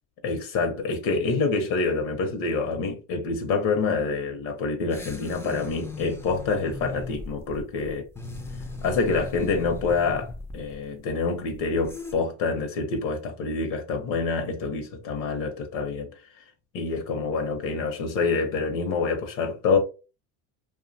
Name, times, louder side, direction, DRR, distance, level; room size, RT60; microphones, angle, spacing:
voice 1, 0.2-8.1 8.8-16.1 16.7-19.8, left 4 dB, 60° left, 0.7 m, -27 dB
sound 1, 4.9-12.1, left 3 dB, 5° left, 0.4 m, -38 dB
2.6 x 2.1 x 2.6 m
supercardioid pair, 105°, 38 cm